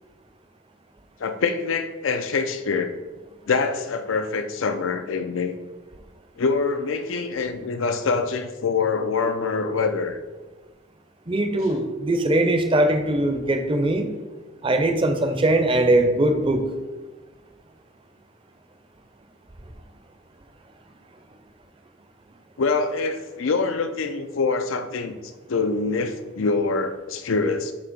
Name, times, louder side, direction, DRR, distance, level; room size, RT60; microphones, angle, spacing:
voice 1, 1.2-3.0 3.5-5.5 6.4-10.2 22.6-25.1 25.5-27.7, left 4 dB, 90° left, 8 dB, 0.5 m, -25 dB
voice 2, 11.3-14.0 14.6-16.6, right 1 dB, 25° right, 7 dB, 0.5 m, -21 dB
7.1 x 2.8 x 5.2 m, 1.2 s
head